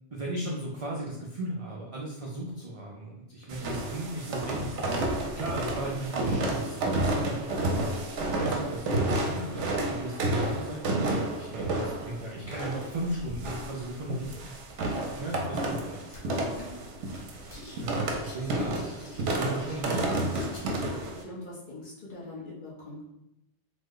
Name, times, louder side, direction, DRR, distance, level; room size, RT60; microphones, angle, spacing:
voice 1, 0.1-4.8 5.3-7.5 8.4-14.4 15.1-16.5 17.8-20.2, right 1 dB, 50° right, -3 dB, 0.4 m, -36 dB
sound 1, 3.5-21.2, right 2 dB, 80° right, 0.9 m, -31 dB
sound 2, 16.1-16.2 16.6-16.8 17.1-17.8 18.1-20.7, left 1 dB, 30° left, 0.8 m, -49 dB
voice 2, 21.2-23.1, left 2 dB, 50° left, -6 dB, 1.1 m, -42 dB
3.0 x 2.1 x 3.7 m, 0.85 s
omnidirectional pair, 1.2 m